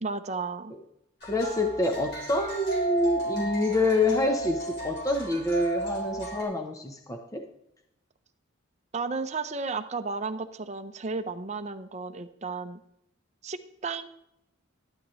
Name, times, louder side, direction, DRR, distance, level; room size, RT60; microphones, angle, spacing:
voice 1, 0.0-0.7 8.9-12.8 13.4-14.1, right 4 dB, 35° right, 8 dB, 0.7 m, -33 dB
sound 1, 1.2-6.4, right 1 dB, 55° left, 4.3 m, -33 dB
voice 2, 1.2-7.4, left 2 dB, 15° left, 4 dB, 0.8 m, -27 dB
12.0 x 11.5 x 3.2 m, 0.78 s
head